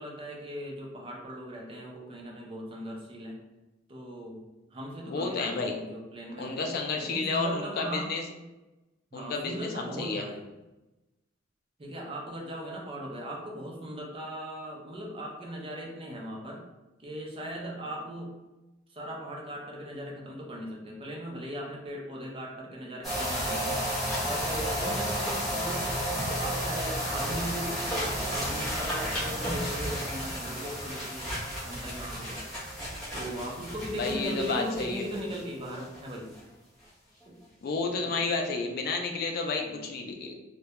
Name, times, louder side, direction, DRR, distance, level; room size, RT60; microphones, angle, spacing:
voice 1, 0.0-3.4 3.9-4.4 4.7-6.6 6.9-8.1 9.1-10.4 11.8-16.6 17.0-18.3 18.9-23.8 24.2-25.9 26.4-31.3 31.6-32.4 33.1-36.3 37.3-37.4 38.0-38.5 39.6-39.8, equal, 30° right, -2 dB, 0.4 m, -38 dB
voice 2, 5.1-5.7 6.4-8.2 9.1-10.2 34.0-35.1 37.6-40.3, left 3 dB, 50° left, 3 dB, 0.3 m, -31 dB
sound 1, 23.0-35.4 35.6-36.0 36.3-36.4, equal, ahead, 0.8 m, -32 dB
2.2 x 2.1 x 2.8 m, 1.0 s
head